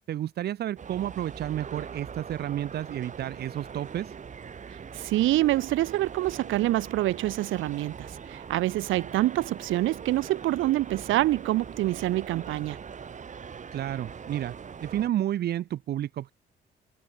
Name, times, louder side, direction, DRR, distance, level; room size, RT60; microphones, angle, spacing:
voice 1, 0.1-4.1 13.7-14.5 14.8-16.3, right 12 dB, 55° right, 0.5 m, -31 dB
sound 1, 0.8-15.1, right 6 dB, 40° right, 1.3 m, -42 dB
voice 2, 4.9-12.8, right 16 dB, 85° right, 0.7 m, -26 dB
cardioid pair, 90°, 20 cm